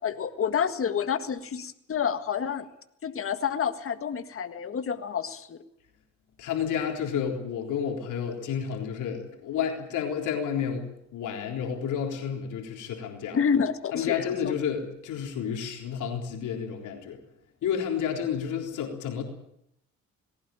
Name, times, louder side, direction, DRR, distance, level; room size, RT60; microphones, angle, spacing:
voice 1, 0.0-2.7 3.0-5.6 13.3-14.3, left 7 dB, 45° left, 9 dB, 1.8 m, -28 dB
voice 2, 6.4-10.9 11.1-13.4 13.9-17.2 17.6-19.2, left 7 dB, 80° left, 2 dB, 3.8 m, -30 dB
19.5 x 17.5 x 9.2 m, 0.76 s
cardioid pair, 90°, 30 cm